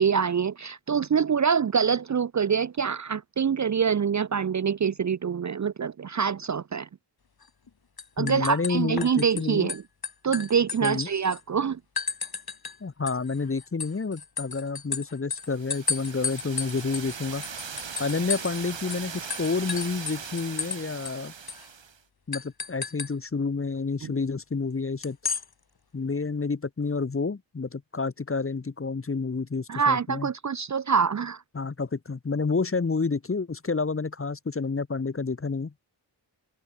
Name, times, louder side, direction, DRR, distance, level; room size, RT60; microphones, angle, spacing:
voice 1, 0.0-6.9 8.2-9.8 10.2-11.8 24.0-24.1 29.7-31.4, right 6 dB, 40° right, 0.5 m, -25 dB
sound 1, 7.4-7.7 8.0-9.4 9.7-11.4 12.0-12.8 13.1-18.6 18.9-19.0 19.3-20.8 21.0-21.1 21.5-21.6 22.3-23.1 25.0-25.4, left 5 dB, 55° left, 2.6 m, -33 dB
voice 2, 8.2-9.7 10.8-11.1 12.8-17.4 18.0-21.3 22.3-25.2 25.9-30.3 31.5-35.7, left 4 dB, 30° left, 1.1 m, -29 dB
sound 2, 15.5-22.0, right 6 dB, 75° right, 4.0 m, -39 dB
wide cardioid pair, 70°, 45 cm